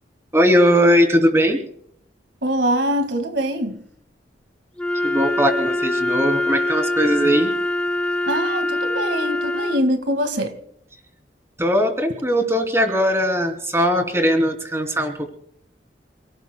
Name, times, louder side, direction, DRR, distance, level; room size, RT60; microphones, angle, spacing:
voice 1, 0.3-1.6 5.0-7.5 11.6-15.3, equal, 15° right, 3.0 m, -19 dB
voice 2, 2.4-3.8 8.3-10.5, equal, 85° right, 1.9 m, -23 dB
Wind instrument woodwind instrument, 4.8-9.9, left 1 dB, 5° left, 0.8 m, -23 dB
29.0 x 18.0 x 2.2 m
head